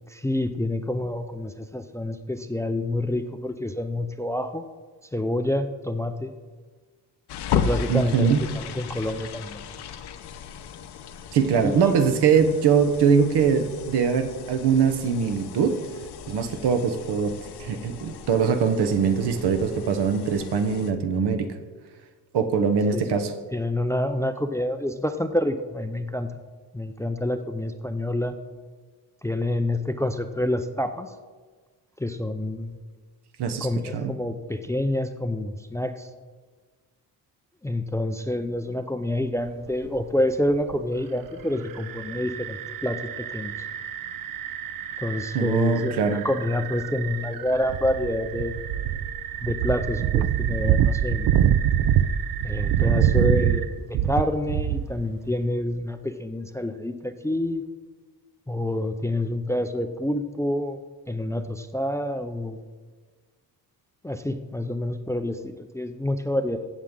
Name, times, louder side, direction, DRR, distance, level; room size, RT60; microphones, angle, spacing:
voice 1, 0.1-4.6 5.1-6.3 7.5-9.6 11.6-11.9 22.9-23.1 23.5-26.3 26.7-28.3 29.2-31.1 32.0-32.8 33.6-36.1 37.6-43.5 45.0-48.6 49.4-51.3 52.4-57.6 58.5-60.8 61.1-62.6 64.0-66.6, left 1 dB, 10° left, 9 dB, 0.3 m, -27 dB
sound 1, 7.3-20.9, left 7 dB, 85° left, 0.8 m, -35 dB
voice 2, 7.9-8.4 11.3-15.8 16.3-17.3 17.6-21.5 22.3-23.3 33.4-33.7 33.9-34.1 45.3-46.2, right 6 dB, 85° right, 8 dB, 1.0 m, -22 dB
sound 2, 39.7-40.0 40.5-40.8 41.7-55.0, right 10 dB, 60° right, 0.5 m, -25 dB
16.0 x 7.3 x 3.7 m, 1.4 s
wide cardioid pair, 155°, 39 cm